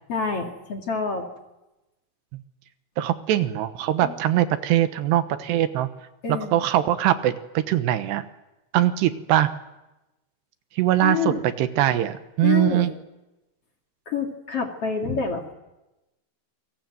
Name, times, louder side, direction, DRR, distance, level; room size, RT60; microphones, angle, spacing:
voice 1, 0.1-1.3 4.0-4.1 6.2-6.7 11.0-11.5 12.4-12.9 14.1-15.4, left 5 dB, 40° left, 2 dB, 2.7 m, -27 dB
voice 2, 3.0-5.9 6.3-8.2 8.7-9.5 10.7-12.9, right 13 dB, 80° right, 10 dB, 3.2 m, -22 dB
28.0 x 23.0 x 7.9 m, 0.98 s
omnidirectional pair, 4.9 m